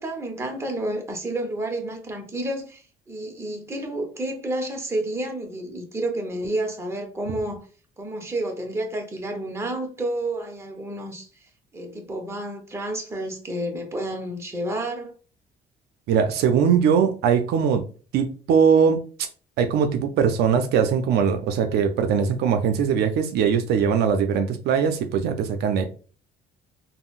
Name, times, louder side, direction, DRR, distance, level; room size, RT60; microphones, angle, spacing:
voice 1, 0.0-7.7 8.0-15.1, right 1 dB, 15° right, 0.8 m, -30 dB
voice 2, 16.1-17.8 18.1-19.0 19.6-25.8, right 7 dB, 75° right, 0.4 m, -21 dB
3.6 x 2.0 x 2.4 m
cardioid pair, 110°, 17 cm